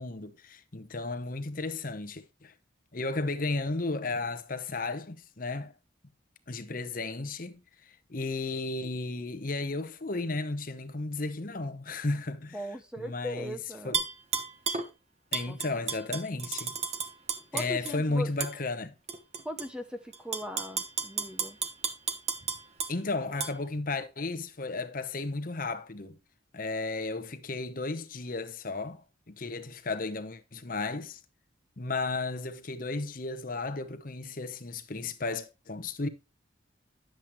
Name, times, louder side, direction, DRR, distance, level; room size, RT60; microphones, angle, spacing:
voice 1, 0.0-2.5 2.9-5.7 6.5-12.6 13.0-13.6 13.8-14.0 15.3-16.8 17.5-18.9 22.9-26.2 26.5-29.0 29.3-31.2 31.8-36.1, left 3 dB, 45° left, 0.9 m, -34 dB
voice 2, 12.5-14.0 15.5-15.6 17.5-18.3 19.4-21.6, equal, 5° right, 0.6 m, -39 dB
Tap / Glass, 13.9-14.9 15.3-17.9 18.4-18.5 19.1-19.7 20.1-22.9 23.4-23.5, right 6 dB, 30° right, 1.0 m, -32 dB
10.5 x 7.6 x 3.0 m
head